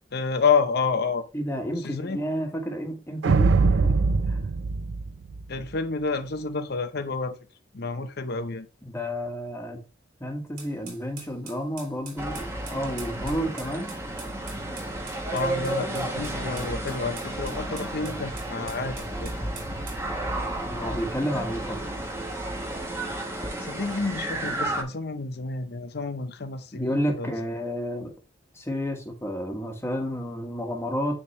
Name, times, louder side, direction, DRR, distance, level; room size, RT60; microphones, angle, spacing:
voice 1, 0.1-1.3 1.8-2.2 5.5-7.4 7.7-8.7 15.3-19.3 23.6-27.3, left 4 dB, 55° left, 0.7 m, -29 dB
voice 2, 1.3-3.9 4.3-4.5 8.9-9.8 10.2-14.0 20.7-21.8 26.7-28.1 28.5-31.2, equal, 15° left, 1.2 m, -31 dB
sound 1, 3.2-5.7, right 4 dB, 75° right, 0.4 m, -22 dB
sound 2, 10.6-20.1, right 5 dB, 50° right, 3.2 m, -45 dB
sound 3, 12.2-24.8, right 1 dB, 15° right, 1.0 m, -32 dB
9.7 x 3.5 x 3.0 m
head